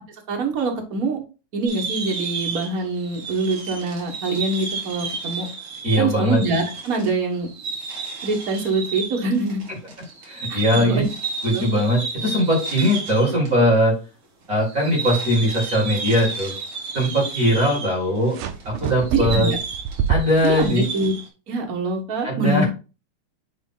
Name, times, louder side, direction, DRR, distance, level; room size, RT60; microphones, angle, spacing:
voice 1, 0.3-1.2 1.5-5.5 6.0-7.5 8.2-9.6 10.5-11.1 11.5-11.7 19.1-19.6 20.4-21.1 21.5-22.6, right 3 dB, 65° right, 2 dB, 0.8 m, -24 dB
sound 1, 1.7-13.5 13.8-13.9 14.6-21.3, right 4 dB, 50° right, 2.3 m, -32 dB
voice 2, 5.8-6.4 9.7-9.8 10.3-11.0 11.4-14.0 14.5-16.5 16.9-18.4 18.6-19.5 20.1-20.9 22.2-22.6, equal, 30° right, -2 dB, 2.4 m, -20 dB
sound 2, 18.3-20.7, right 8 dB, 80° right, 2.1 m, -26 dB
8.9 x 3.1 x 3.8 m, 0.32 s
omnidirectional pair, 3.5 m